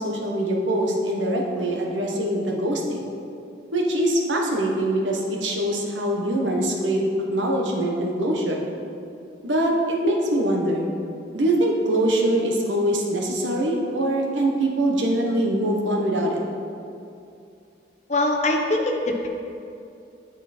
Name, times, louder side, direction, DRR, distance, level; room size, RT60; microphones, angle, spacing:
voice 1, 0.0-3.1 3.7-8.7 9.4-10.8 11.3-16.4, right 1 dB, 90° right, 0 dB, 1.2 m, -23 dB
voice 2, 18.1-19.3, left 2 dB, 35° left, 1 dB, 0.9 m, -22 dB
9.3 x 5.9 x 4.3 m, 2.6 s
head